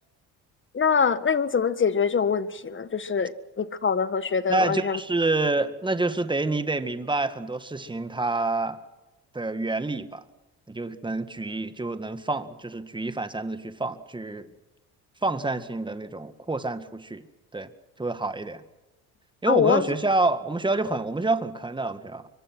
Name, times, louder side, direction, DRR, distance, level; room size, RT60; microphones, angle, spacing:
voice 1, 0.7-5.0 19.5-19.9, left 6 dB, 30° left, 14 dB, 1.5 m, -24 dB
voice 2, 4.5-8.8 9.3-10.2 10.7-14.5 15.2-17.3 17.5-17.7 18.0-18.6 19.4-22.3, right 2 dB, 10° right, 11 dB, 1.9 m, -27 dB
24.5 x 23.0 x 6.2 m, 1.1 s
supercardioid pair, 85°, 39 cm